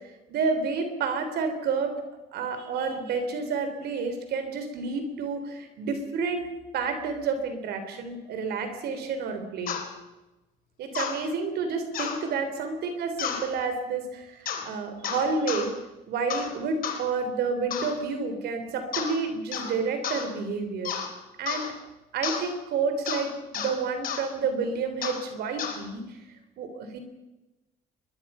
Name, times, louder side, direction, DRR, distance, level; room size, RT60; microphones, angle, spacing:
voice 1, 0.3-2.0 2.3-6.5 6.7-9.8 10.8-15.7 16.1-21.0 21.4-21.7 22.1-26.2 26.6-27.0, right 4 dB, 70° right, 7 dB, 3.6 m, -30 dB
sound 1, 9.7-9.8 10.9-11.2 11.9-12.2 13.2-13.4 14.4-14.7 15.0-15.7 16.3-16.5 16.8-17.0 17.7-18.0 18.9-19.2 19.5-19.7 20.0-20.2 20.8-21.1 21.5-21.7 22.2-22.4 23.1-23.2 23.5-23.7 24.0-24.2 25.0-25.2 25.6-25.8, left 8 dB, 60° left, 4.1 m, -31 dB
23.0 x 21.0 x 5.6 m, 1.0 s
cardioid pair, 110°, 17 cm